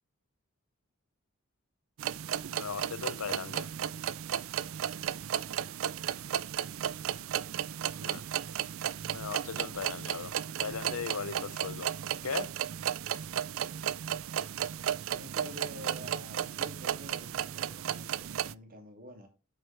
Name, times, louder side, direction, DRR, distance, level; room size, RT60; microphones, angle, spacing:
sound 1, 2.0-18.5, right 9 dB, 65° right, 0.4 m, -34 dB
voice 1, 2.5-3.7 8.0-8.2 9.1-10.4 10.6-11.9 12.2-12.5, left 5 dB, 85° left, 0.7 m, -37 dB
voice 2, 10.5-11.4 15.1-19.3, equal, 40° right, 2.6 m, -48 dB
8.6 x 7.5 x 3.3 m
head